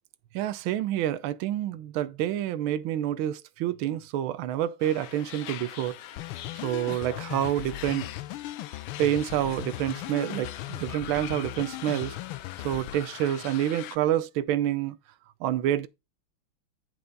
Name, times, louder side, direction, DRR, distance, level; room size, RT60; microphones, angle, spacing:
voice 1, 0.3-6.0 6.6-8.1 9.0-12.2 12.6-15.0 15.4-15.9, right 12 dB, 80° right, 1.5 m, -28 dB
sound 1, 4.8-14.0, left 12 dB, 70° left, 1.1 m, -43 dB
sound 2, 6.2-13.0, left 15 dB, 90° left, 1.5 m, -39 dB
8.3 x 5.9 x 3.9 m
omnidirectional pair, 2.3 m